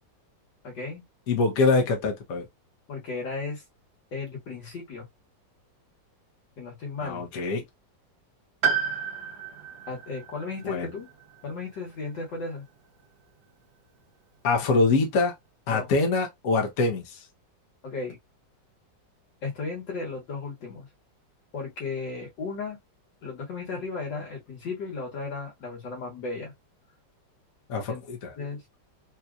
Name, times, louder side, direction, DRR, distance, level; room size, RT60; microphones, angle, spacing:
voice 1, 0.6-1.0 2.9-3.6 4.1-5.1 6.6-7.3 9.9-11.1 11.4-12.6 15.7-15.9 17.8-18.2 19.4-20.9 21.5-22.8 23.2-26.5 27.9-28.0 28.4-28.6, left 4 dB, 75° left, 2.2 m, -35 dB
voice 2, 1.3-2.4 7.0-7.6 10.6-10.9 14.4-15.3 15.7-17.2 27.7-28.3, left 3 dB, 55° left, 1.1 m, -24 dB
Piano, 8.6-12.5 12.8-12.9 14.0-14.1, right 6 dB, 65° right, 1.3 m, -32 dB
4.2 x 2.5 x 2.3 m
omnidirectional pair, 2.0 m